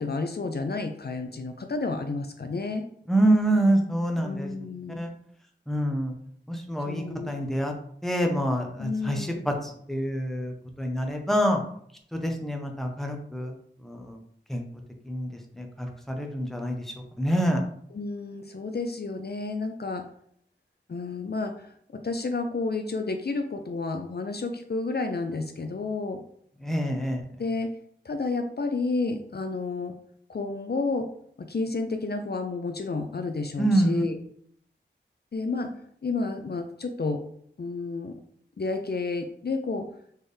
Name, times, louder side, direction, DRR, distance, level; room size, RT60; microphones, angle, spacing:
voice 1, 0.0-2.8 4.2-5.1 6.9-7.3 8.8-9.4 17.9-20.0 20.9-26.2 27.4-27.7 28.0-29.9 30.3-31.1 31.4-34.2 35.3-35.7 36.0-37.2 37.6-38.1 38.6-39.9, left 3 dB, 60° left, 6 dB, 0.5 m, -31 dB
voice 2, 3.1-4.5 5.0-5.1 5.7-6.1 6.5-7.7 8.0-11.6 12.1-13.5 13.8-14.2 14.5-14.6 15.0-15.3 15.6-16.8 17.2-17.6 26.6-27.2 33.6-34.0, right 1 dB, ahead, 2 dB, 0.9 m, -26 dB
4.3 x 3.4 x 3.3 m, 0.66 s
wide cardioid pair, 45°, 19 cm